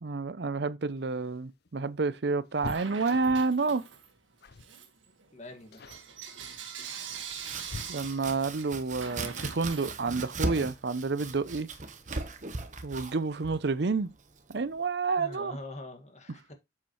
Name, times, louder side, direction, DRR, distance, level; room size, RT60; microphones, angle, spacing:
voice 1, 0.0-3.8 7.9-11.7 12.8-14.1 14.5-15.5, right 4 dB, 60° right, 0.6 m, -29 dB
sound 1, 0.9-3.6 4.4-4.8 5.0-5.3 5.7-6.1 6.9-8.4 10.1-10.2 10.6-10.7 11.9-12.3 12.6-12.7 13.0-13.2, left 3 dB, 55° left, 0.6 m, -45 dB
Bell / Coin (dropping), 2.6-4.2 4.6-10.5, right 7 dB, 85° right, 1.7 m, -44 dB
voice 2, 5.3-5.8 10.6-10.7 15.2-16.5, left 1 dB, 35° left, 1.9 m, -43 dB
Domestic sounds home sounds, 7.1-14.8, right 3 dB, 40° right, 1.1 m, -39 dB
7.6 x 7.3 x 3.1 m
head